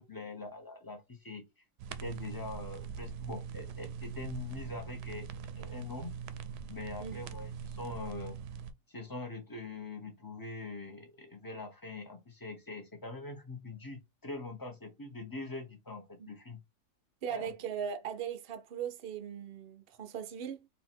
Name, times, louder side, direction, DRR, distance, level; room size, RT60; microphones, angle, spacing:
voice 1, 0.0-1.4 2.0-6.1 6.7-8.4 8.9-16.6 17.3-17.5, left 3 dB, 15° left, 0.8 m, -43 dB
sound 1, 1.8-8.7, right 7 dB, 80° right, 1.1 m, -42 dB
voice 2, 17.2-20.7, right 8 dB, 55° right, 0.7 m, -39 dB
4.2 x 2.8 x 4.4 m
omnidirectional pair, 1.7 m